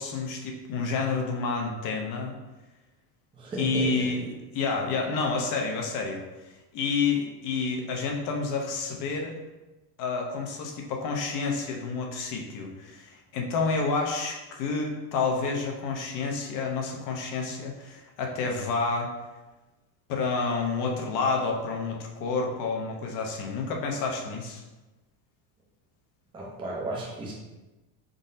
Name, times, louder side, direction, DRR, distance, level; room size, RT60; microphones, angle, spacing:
voice 1, 0.0-2.4 3.6-4.3 4.5-6.2 6.7-9.3 10.0-19.1 20.1-24.6, left 4 dB, 45° left, 1 dB, 0.7 m, -29 dB
voice 2, 3.3-4.1 26.3-27.3, right 2 dB, 10° right, -4 dB, 0.5 m, -34 dB
4.0 x 3.8 x 2.6 m, 1.1 s
cardioid pair, 170°, 46 cm